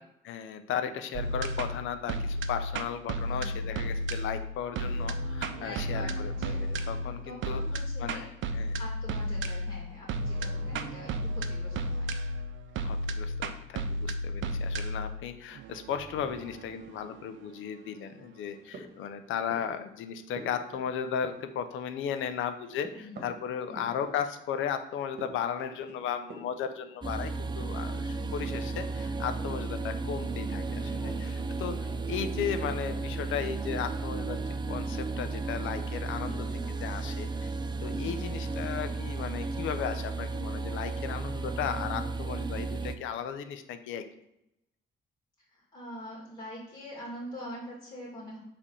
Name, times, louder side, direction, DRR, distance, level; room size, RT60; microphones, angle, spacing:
voice 1, 0.2-7.6 8.0-8.8 12.8-34.4 34.7-36.5 36.8-37.5 37.8-44.0, left 8 dB, 80° left, 9 dB, 0.5 m, -35 dB
sound 1, 1.1-18.3, equal, 75° right, 0.5 m, -33 dB
voice 2, 3.2-3.7 5.5-8.3 8.7-12.1 22.9-23.3 23.7-24.0 28.1-28.4 31.0-31.9 36.2-36.4 37.9-38.3 45.5-48.4, left 1 dB, 20° left, -7 dB, 2.2 m, -45 dB
sound 2, 18.4-19.8 20.1-21.7 21.9-24.5 25.0-26.7, right 2 dB, 55° right, 1.3 m, -49 dB
sound 3, 27.0-43.0, right 3 dB, 20° right, 0.5 m, -34 dB
5.0 x 3.4 x 5.4 m, 0.83 s
cardioid pair, 90°, 20 cm